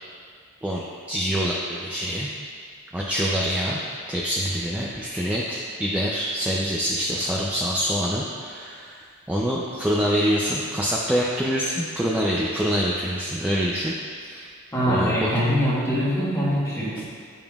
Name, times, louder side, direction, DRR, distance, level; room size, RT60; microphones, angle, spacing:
voice 1, 0.6-2.3 2.9-3.8 4.1-14.5 14.9-15.3, equal, 5° right, -5 dB, 0.4 m, -25 dB
voice 2, 14.7-17.1, equal, 15° left, -8 dB, 1.3 m, -23 dB
8.9 x 5.2 x 2.3 m, 2.1 s
head